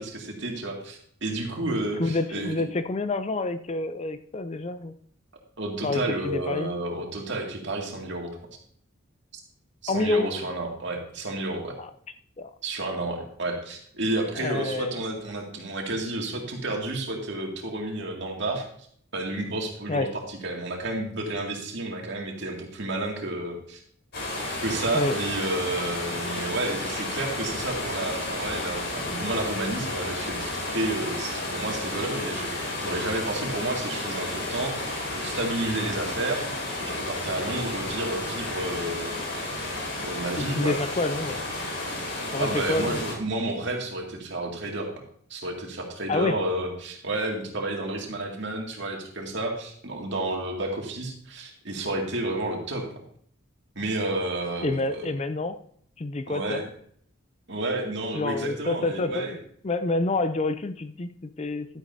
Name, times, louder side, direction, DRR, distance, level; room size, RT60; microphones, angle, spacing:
voice 1, 0.0-2.6 5.6-8.4 9.8-11.7 12.6-18.7 19.1-23.8 24.6-36.4 36.8-39.2 40.0-40.8 42.4-44.9 45.3-53.0 53.8-55.1 56.3-56.7 57.5-59.4, right 2 dB, 60° right, 1 dB, 2.2 m, -31 dB
voice 2, 2.0-4.9 5.8-6.7 9.9-10.3 11.8-11.9 12.4-12.5 14.4-14.9 19.9-20.1 24.9-25.2 40.4-41.4 42.3-43.0 46.1-46.4 54.6-55.6 56.0-56.6 58.1-59.4 59.6-61.8, left 2 dB, 30° left, 11 dB, 0.4 m, -28 dB
sound 1, 24.1-43.1, left 2 dB, 55° left, 4.2 m, -32 dB
11.5 x 10.0 x 2.7 m, 0.62 s
head